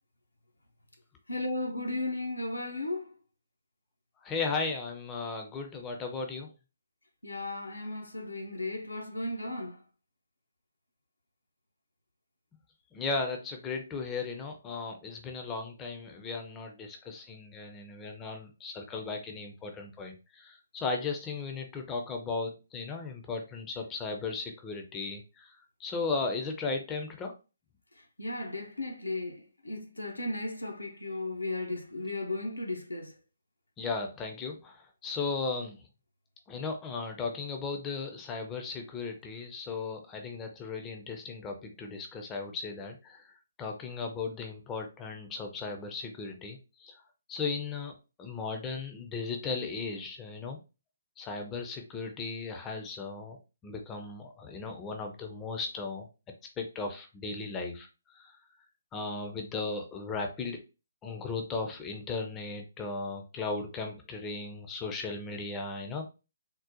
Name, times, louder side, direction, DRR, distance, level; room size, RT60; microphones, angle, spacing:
voice 1, 1.3-3.1 7.2-9.8 28.2-33.1, left 2 dB, 85° left, 0.7 m, -35 dB
voice 2, 4.2-6.5 12.9-27.3 33.8-35.8 36.5-43.3 43.6-46.9 47.3-50.6 51.2-53.4 53.6-56.1 56.6-58.4 58.9-60.6 61.0-66.1, left 4 dB, 15° left, 0.4 m, -36 dB
3.7 x 2.1 x 2.7 m
figure-of-eight pair, 135°, 0 cm